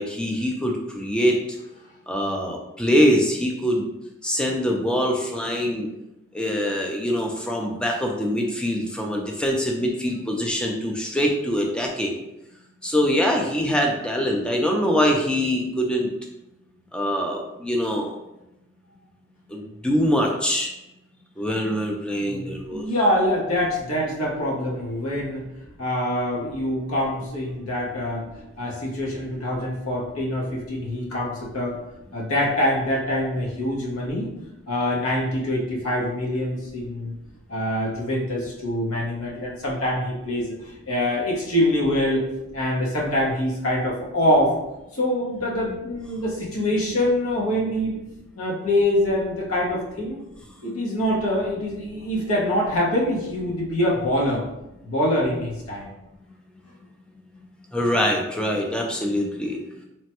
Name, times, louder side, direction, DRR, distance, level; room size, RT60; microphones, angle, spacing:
voice 1, 0.0-1.3 2.1-3.9 4.2-5.9 6.3-12.2 12.8-16.1 16.9-18.1 19.5-20.7 21.4-22.9 57.7-59.6, equal, 5° left, 0 dB, 0.3 m, -23 dB
voice 2, 22.2-25.5 25.8-28.2 28.6-31.8 32.1-34.3 34.7-37.1 37.5-42.2 42.5-44.6 44.9-48.0 48.4-50.2 50.6-54.4 54.8-55.9, left 1 dB, 85° left, -4 dB, 0.9 m, -24 dB
3.0 x 2.1 x 2.9 m, 0.92 s
head